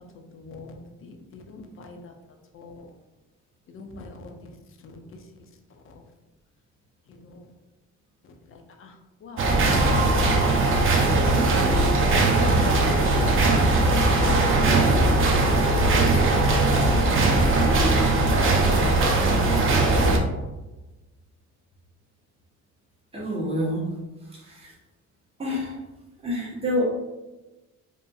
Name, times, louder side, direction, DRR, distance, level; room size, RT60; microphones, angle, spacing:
voice 1, 0.1-2.1 2.5-2.9 3.7-4.5 4.8-5.0 5.9-6.0 7.2-7.4 8.5-8.9 9.2-11.2, left 2 dB, 45° left, 4 dB, 0.5 m, -43 dB
sound 1, 9.4-20.2, right 2 dB, 45° right, 0.5 m, -20 dB
voice 2, 23.1-23.9 24.4-24.7 25.4-25.8 26.2-26.8, equal, 20° right, -5 dB, 1.0 m, -27 dB
2.7 x 2.6 x 2.3 m, 1.1 s
cardioid pair, 90°, 30 cm